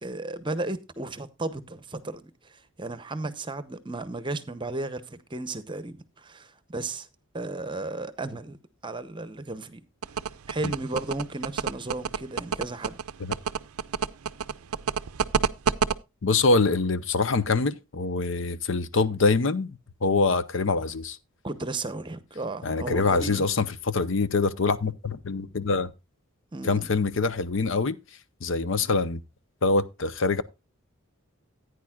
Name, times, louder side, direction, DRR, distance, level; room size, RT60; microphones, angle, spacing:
voice 1, 0.0-7.1 7.3-8.6 8.8-9.8 10.5-13.0 21.4-23.4 26.5-26.9 28.7-28.9, right 2 dB, 20° right, 0.8 m, -34 dB
sound 1, 10.0-15.9, right 7 dB, 85° right, 0.5 m, -27 dB
voice 2, 16.2-21.2 22.6-25.9 26.6-28.0 28.4-29.2 29.6-30.4, left 3 dB, 60° left, 0.7 m, -24 dB
15.0 x 9.5 x 2.3 m
head